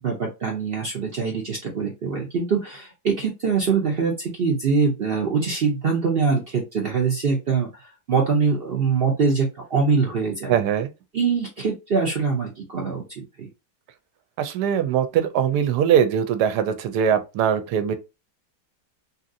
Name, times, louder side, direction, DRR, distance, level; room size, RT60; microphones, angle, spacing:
voice 1, 0.0-10.6 11.1-13.5, right 5 dB, 60° right, 0.6 m, -23 dB
voice 2, 10.5-10.9 14.4-18.0, right 8 dB, 80° right, 1.1 m, -21 dB
2.7 x 2.7 x 2.5 m
omnidirectional pair, 1.8 m